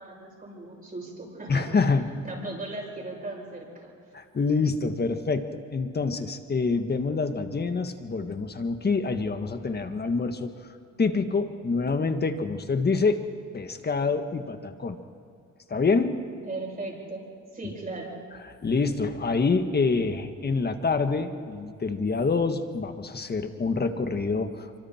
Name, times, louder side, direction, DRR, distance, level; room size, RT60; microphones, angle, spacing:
voice 1, 0.0-1.9 2.2-3.9 16.4-17.2 17.5-18.2, right 2 dB, 30° right, -2 dB, 7.6 m, -37 dB
voice 2, 1.5-2.2 4.1-10.5 11.0-13.2 13.5-15.0 15.7-16.2 18.6-24.8, left 4 dB, 35° left, 8 dB, 1.7 m, -26 dB
25.5 x 24.5 x 4.5 m, 2.4 s
cardioid pair, 90°, 30 cm